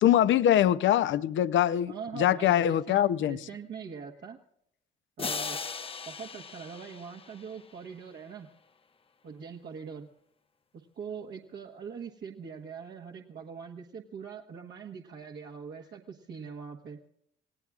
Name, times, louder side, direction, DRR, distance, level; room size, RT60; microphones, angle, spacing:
voice 1, 0.0-3.4, left 11 dB, 75° left, 0.7 m, -23 dB
voice 2, 1.9-4.4 5.2-5.6 6.1-8.5 9.2-10.1 10.7-17.0, right 6 dB, 65° right, 1.4 m, -42 dB
sound 1, 5.2-8.0, left 5 dB, 30° left, 0.7 m, -38 dB
26.0 x 18.0 x 2.5 m
cardioid pair, 90°, 20 cm